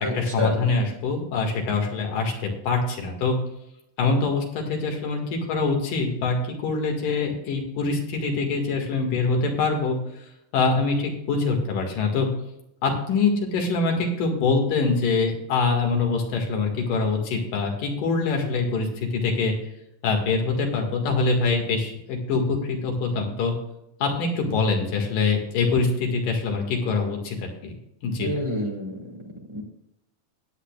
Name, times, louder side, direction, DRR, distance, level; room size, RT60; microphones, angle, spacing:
voice 1, 0.1-3.4 4.0-10.0 10.5-12.3 12.8-19.6 20.0-23.5 24.0-27.7 28.0-28.5, left 4 dB, 85° left, 2 dB, 3.6 m, -24 dB
voice 2, 28.2-28.9 29.5-29.6, left 1 dB, 15° right, -2 dB, 1.0 m, -27 dB
19.0 x 8.5 x 2.4 m, 0.83 s
omnidirectional pair, 3.7 m